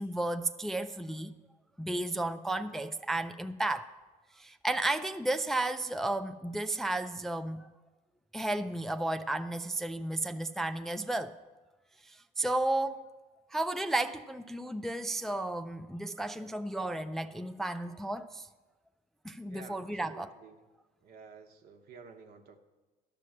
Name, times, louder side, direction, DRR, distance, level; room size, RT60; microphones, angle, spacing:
voice 1, 0.0-1.3 1.8-3.9 4.4-7.7 8.3-11.4 12.1-13.0 13.5-18.5 19.2-20.3, right 2 dB, ahead, 0.3 m, -33 dB
voice 2, 19.5-20.6 21.0-22.6, right 5 dB, 70° right, 1.1 m, -51 dB
12.0 x 6.0 x 7.5 m
cardioid pair, 110°, 17 cm